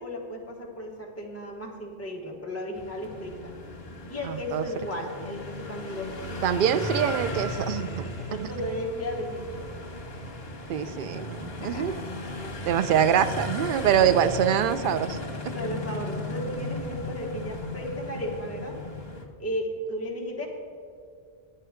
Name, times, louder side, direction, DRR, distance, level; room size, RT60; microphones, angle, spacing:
voice 1, 0.0-3.5 4.1-6.4 7.0-7.4 7.7-9.7 10.8-11.0 11.6-11.9 12.3-13.2 14.0-14.2 15.5-18.8 19.4-20.5, equal, 15° left, -2 dB, 1.3 m, -35 dB
sound 1, 2.7-19.2, left 2 dB, 70° left, 1.5 m, -36 dB
voice 2, 4.3-4.6 6.4-8.1 8.4-8.5 10.7-11.9 12.7-15.2 15.4-15.5, right 9 dB, 60° right, 12 dB, 0.7 m, -24 dB
10.0 x 8.7 x 5.0 m, 2.3 s
omnidirectional pair, 1.0 m